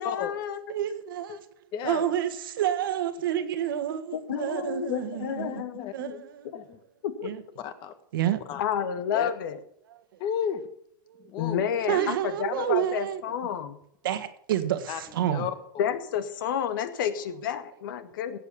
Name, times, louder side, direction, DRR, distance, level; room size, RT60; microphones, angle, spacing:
voice 1, 0.0-0.9 4.3-6.2 6.5-6.6 7.0-7.4 8.6-9.6 11.4-13.8 15.8-18.4, left 8 dB, 70° left, 10 dB, 1.9 m, -30 dB
voice 2, 0.7-1.5 1.8-5.6 5.9-6.5 7.2-7.4 8.1-8.4 11.1-11.3 11.9-13.2 14.0-15.5, right 11 dB, 75° right, 10 dB, 1.8 m, -29 dB
voice 3, 1.7-2.1 4.4-4.7 5.3-5.9 6.5-6.8 7.6-7.9 8.5-8.6 9.1-9.3 10.2-10.7 11.3-12.1 12.6-12.7 14.9-15.8, left 8 dB, 40° left, 10 dB, 2.0 m, -34 dB
17.0 x 8.1 x 6.9 m, 0.66 s
hypercardioid pair, 115°, 12 cm